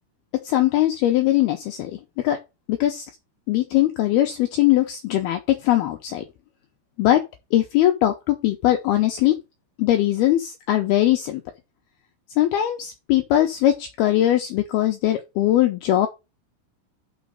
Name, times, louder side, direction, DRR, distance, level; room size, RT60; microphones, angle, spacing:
voice 1, 0.4-2.4 2.7-3.1 3.5-6.2 7.0-7.2 7.5-9.4 9.8-11.4 12.4-16.1, left 13 dB, 85° left, 2.2 m, -20 dB
6.2 x 5.1 x 6.5 m
omnidirectional pair, 5.6 m